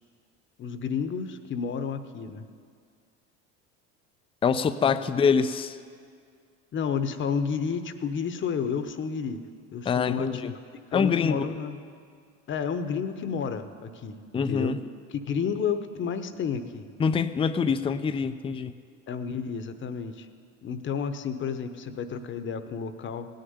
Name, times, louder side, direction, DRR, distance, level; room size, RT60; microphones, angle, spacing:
voice 1, 0.6-2.4 6.7-9.4 9.7-10.4 10.7-11.8 12.5-14.8 15.3-16.9 19.1-20.3 20.6-23.3, left 6 dB, 35° left, 10 dB, 1.0 m, -31 dB
voice 2, 4.4-5.8 9.8-10.5 10.9-11.5 14.3-14.8 17.0-18.7, left 6 dB, 15° left, 11 dB, 0.5 m, -25 dB
16.5 x 6.7 x 9.5 m, 2.2 s
supercardioid pair, 95°, 33 cm